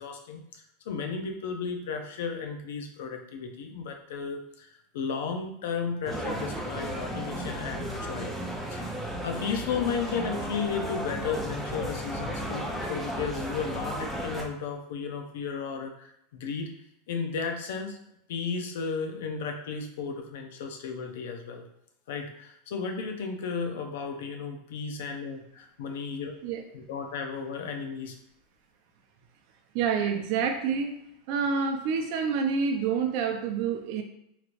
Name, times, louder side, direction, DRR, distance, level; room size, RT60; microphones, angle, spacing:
voice 1, 0.0-4.7 4.9-8.4 8.7-8.9 9.2-16.7 17.1-18.0 18.3-21.6 22.1-26.3 26.7-28.2 30.0-30.1, left 5 dB, 80° left, 4 dB, 0.6 m, -34 dB
sound 1, 6.0-14.4, right 1 dB, ahead, 0.7 m, -34 dB
voice 2, 29.7-30.9 31.3-34.0, right 6 dB, 60° right, 4 dB, 0.5 m, -27 dB
3.1 x 2.9 x 2.5 m, 0.77 s
supercardioid pair, 130°, 0 cm